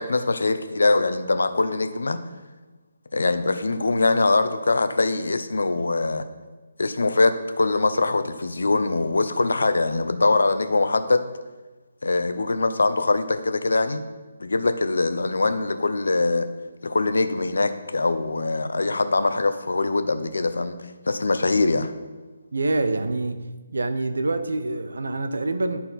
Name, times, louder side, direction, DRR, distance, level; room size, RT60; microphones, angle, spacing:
voice 1, 0.0-2.2 3.1-6.3 6.8-11.2 12.0-14.0 14.4-16.5 16.8-20.8 21.1-21.9, left 3 dB, 90° left, 10 dB, 0.7 m, -22 dB
voice 2, 22.5-23.4 23.7-25.8, right 2 dB, 90° right, 9 dB, 0.8 m, -25 dB
11.0 x 4.2 x 4.1 m, 1.2 s
hypercardioid pair, 175°, 0 cm